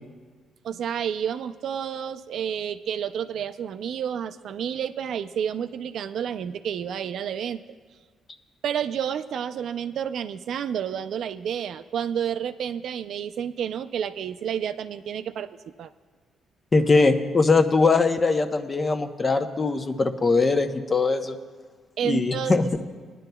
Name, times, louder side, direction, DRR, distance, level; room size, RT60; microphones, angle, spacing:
voice 1, 0.6-7.6 8.6-15.5 15.8-15.9 22.0-22.7, right 8 dB, 70° right, 9 dB, 0.4 m, -30 dB
voice 2, 16.7-21.4 22.0-22.7, left 3 dB, 30° left, 7 dB, 0.8 m, -21 dB
20.5 x 10.5 x 2.3 m, 1.5 s
cardioid pair, 90°, 0 cm